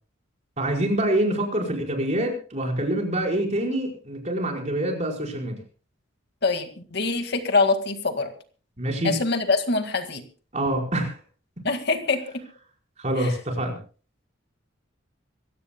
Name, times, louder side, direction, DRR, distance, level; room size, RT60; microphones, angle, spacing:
voice 1, 0.6-5.6 8.8-9.2 10.5-11.2 13.0-13.8, right 1 dB, 35° right, 0 dB, 5.0 m, -26 dB
voice 2, 6.4-8.3 9.0-10.2 11.6-12.4 13.2-13.3, left 3 dB, 60° left, 7 dB, 2.0 m, -24 dB
26.0 x 15.5 x 2.3 m, 0.38 s
head